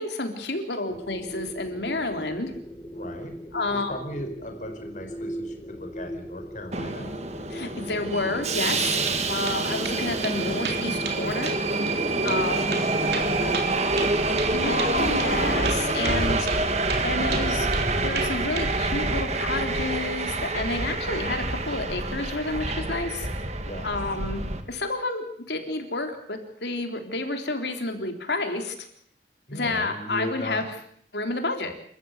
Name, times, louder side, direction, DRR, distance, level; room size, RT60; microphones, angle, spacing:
voice 1, 0.0-2.5 3.5-3.9 7.5-8.9 9.3-11.5 12.2-12.9 14.5-16.5 17.0-17.7 18.0-23.3 23.8-28.7 29.5-30.7 31.1-31.7, left 2 dB, 75° left, 5 dB, 3.7 m, -30 dB
sound 1, 0.9-15.8, equal, 20° left, 1.6 m, -39 dB
voice 2, 2.9-3.3 3.7-7.2 8.9-9.1 12.2-13.5 13.9-14.9 23.6-23.9 29.5-30.6 31.6-31.7, left 1 dB, 45° left, 4 dB, 4.6 m, -38 dB
Subway metro underground, 6.7-24.6, right 2 dB, 40° right, 2.2 m, -27 dB
sound 2, 9.1-9.2 9.5-10.0 10.2-10.4 10.6-11.2 11.5-11.6 11.9-12.0 12.3-12.4 12.7-14.5 14.8-14.9 15.2-15.3 15.6-16.2 16.5-16.6 16.9-17.9 18.2-18.7, right 5 dB, 65° right, 3.6 m, -33 dB
28.0 x 14.5 x 8.1 m, 0.63 s
head